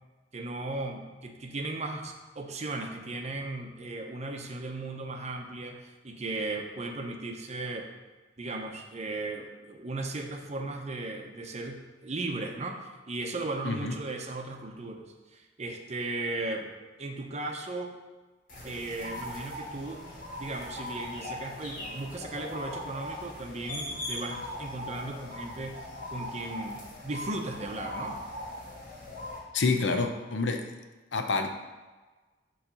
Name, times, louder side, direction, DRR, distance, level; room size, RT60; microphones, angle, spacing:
voice 1, 0.3-7.9 8.4-15.0 15.3-16.7 17.0-17.9 18.6-20.0 20.4-25.8 26.1-28.2, right 2 dB, 40° right, 3 dB, 0.7 m, -36 dB
voice 2, 13.6-13.9 29.5-30.7 31.1-31.5, left 3 dB, 85° left, 5 dB, 0.6 m, -28 dB
sound 1, 18.5-29.4, left 1 dB, 50° left, 1.6 m, -40 dB
7.1 x 3.2 x 5.2 m, 1.3 s
head